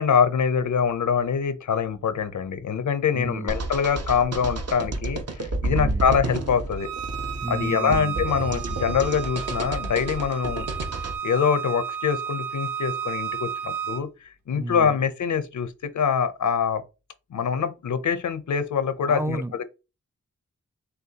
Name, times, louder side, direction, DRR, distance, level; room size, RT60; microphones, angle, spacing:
voice 1, 0.0-6.9 7.5-10.7 11.2-14.1 14.5-16.8 17.3-19.6, left 7 dB, 80° left, 0.6 m, -24 dB
voice 2, 3.1-3.6 5.6-6.1 7.4-8.2 14.5-15.0 19.1-19.6, right 2 dB, 10° right, 0.4 m, -32 dB
sound 1, 3.5-11.2, right 2 dB, 55° right, 0.9 m, -30 dB
Bowed string instrument, 6.8-14.0, right 8 dB, 85° right, 0.9 m, -33 dB
6.6 x 2.3 x 2.8 m
wide cardioid pair, 80°, 29 cm